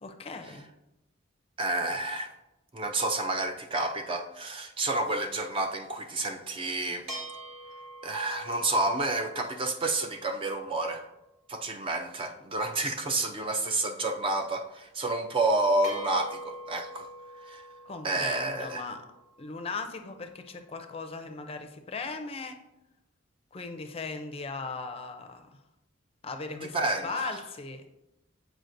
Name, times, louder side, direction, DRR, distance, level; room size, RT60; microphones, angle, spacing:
voice 1, 0.0-0.7 17.9-19.0 19.4-22.5 23.5-25.6 26.2-26.8 27.0-27.8, left 4 dB, 30° left, 6 dB, 0.5 m, -38 dB
voice 2, 1.6-2.3 2.7-7.1 8.0-11.0 11.5-17.1 17.4-17.7 18.0-18.9 26.7-27.4, right 2 dB, 25° right, 6 dB, 0.4 m, -30 dB
sound 1, 7.1-10.8 15.8-20.2, right 1 dB, 85° right, 2.1 m, -45 dB
7.8 x 4.8 x 2.6 m, 0.92 s
head